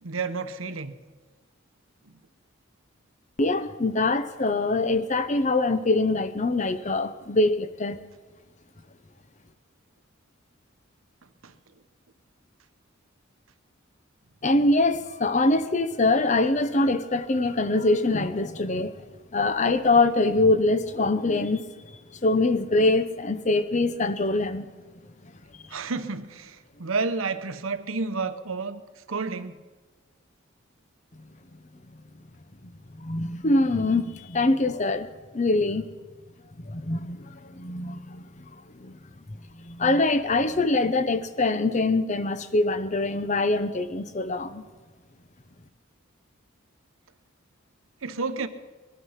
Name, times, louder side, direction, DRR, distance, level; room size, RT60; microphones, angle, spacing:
voice 1, 0.0-0.9 2.1-2.2 11.4-11.5 25.7-28.8 29.1-29.6 48.0-48.5, right 4 dB, 75° right, 0.9 m, -30 dB
voice 2, 3.4-8.0 14.4-18.9 19.3-21.7 22.2-24.7 32.9-35.1 35.3-35.8 36.6-38.5 38.8-39.0 39.5-44.6, left 2 dB, 35° left, 0.7 m, -24 dB
21.0 x 11.5 x 5.7 m
head